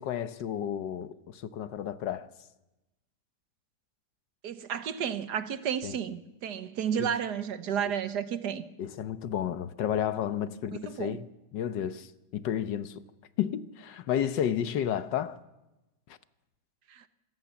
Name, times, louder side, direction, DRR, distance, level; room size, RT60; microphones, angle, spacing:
voice 1, 0.0-2.3 5.8-5.9 6.9-7.1 8.8-13.0 13.4-15.4 16.1-16.2, left 9 dB, 85° left, 1.6 m, -32 dB
voice 2, 4.4-8.6 10.7-11.2 16.9-17.1, right 8 dB, 70° right, 1.6 m, -32 dB
26.5 x 16.5 x 7.1 m
omnidirectional pair, 1.9 m